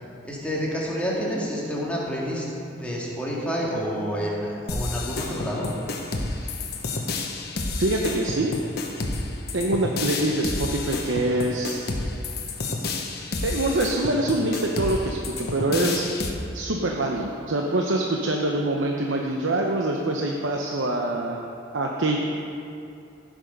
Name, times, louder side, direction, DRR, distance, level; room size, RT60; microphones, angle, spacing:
voice 1, 0.2-5.7, equal, 5° left, -5 dB, 1.9 m, -29 dB
sound 1, 4.7-16.3, left 3 dB, 55° left, 1.1 m, -30 dB
voice 2, 7.8-8.5 9.5-11.8 13.4-16.1 16.5-21.4 21.7-22.3, right 2 dB, 80° right, 0 dB, 0.8 m, -25 dB
15.0 x 6.4 x 5.4 m, 2.6 s
head